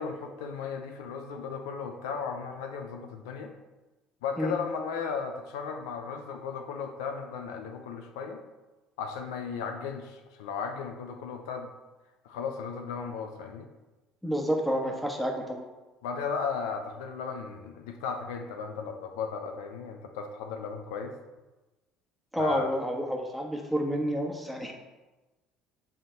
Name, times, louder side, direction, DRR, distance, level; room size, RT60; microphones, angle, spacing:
voice 1, 0.0-3.5 4.2-8.4 9.0-11.7 12.2-13.7 16.0-21.1 22.4-22.7, left 5 dB, 70° left, 4 dB, 0.6 m, -35 dB
voice 2, 14.2-15.6 22.3-24.7, equal, ahead, 1 dB, 1.3 m, -29 dB
7.6 x 3.6 x 4.5 m, 1.1 s
figure-of-eight pair, 60°, 2 cm